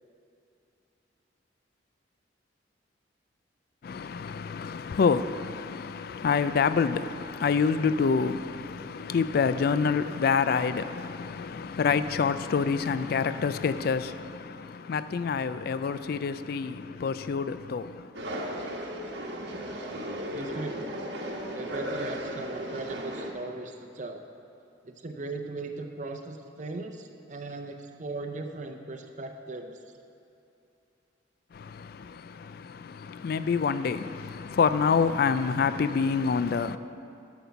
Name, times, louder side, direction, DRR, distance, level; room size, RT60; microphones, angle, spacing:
voice 1, 3.8-18.5 31.5-36.8, left 5 dB, 50° left, 0.3 m, -27 dB
sound 1, 18.1-23.3, equal, 65° right, 1.1 m, -35 dB
voice 2, 20.3-20.8 21.5-24.2 24.8-29.8, right 2 dB, 40° right, 0.7 m, -38 dB
9.2 x 7.1 x 5.8 m
head